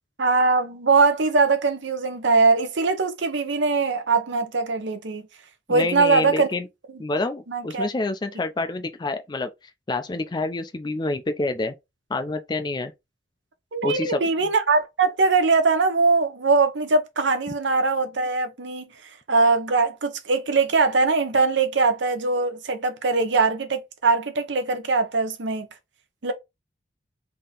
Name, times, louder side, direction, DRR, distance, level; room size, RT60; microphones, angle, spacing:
voice 1, 0.2-5.2 5.7-6.5 7.5-7.9 13.7-18.8 19.3-25.7 26.2-26.3, right 4 dB, 75° right, 0.8 m, -21 dB
voice 2, 5.7-6.7 7.0-9.5 9.9-11.7 12.1-12.9 13.8-14.2, left 2 dB, 25° left, 0.4 m, -27 dB
3.7 x 2.8 x 3.8 m
head